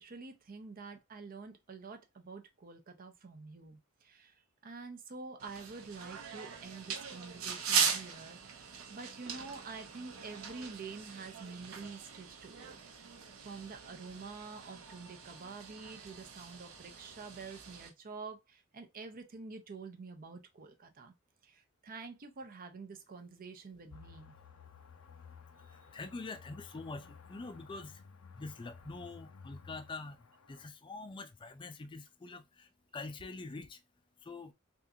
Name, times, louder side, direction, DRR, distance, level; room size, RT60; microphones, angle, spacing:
voice 1, 0.0-12.8 13.4-21.1 21.4-24.3, right 4 dB, 40° right, 0.5 m, -48 dB
sound 1, 5.4-17.9, right 6 dB, 70° right, 0.7 m, -40 dB
sound 2, 23.9-30.7, left 5 dB, 75° left, 0.5 m, -55 dB
voice 2, 25.6-28.1 28.3-33.8 34.2-34.5, left 3 dB, 25° left, 0.3 m, -45 dB
3.5 x 2.5 x 2.7 m
head